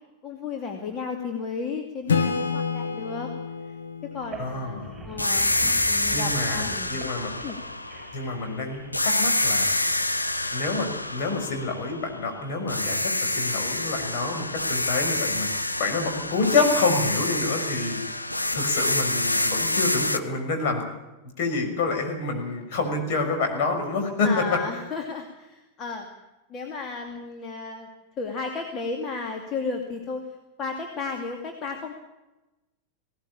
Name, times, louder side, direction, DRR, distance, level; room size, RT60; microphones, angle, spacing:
voice 1, 0.2-3.3 3.6-3.7 4.1-6.9 7.4-7.6 24.2-26.1 26.5-27.9 28.2-30.3 30.6-31.9, left 4 dB, 30° left, 2 dB, 2.5 m, -33 dB
Acoustic guitar / Strum, 2.1-5.6, left 5 dB, 70° left, 1.6 m, -29 dB
sound 1, 4.1-9.6, right 4 dB, 10° right, 7.3 m, -43 dB
voice 2, 4.4-5.1 6.1-7.3 8.1-9.8 10.5-15.5 15.8-18.0 18.5-20.8 21.4-24.6, left 3 dB, 50° left, 3 dB, 6.1 m, -27 dB
sound 2, 5.2-8.5 8.9-12.3 12.7-20.2, left 2 dB, 85° left, 1.0 m, -27 dB
19.5 x 18.0 x 8.7 m, 1.0 s
figure-of-eight pair, 90°, 0 cm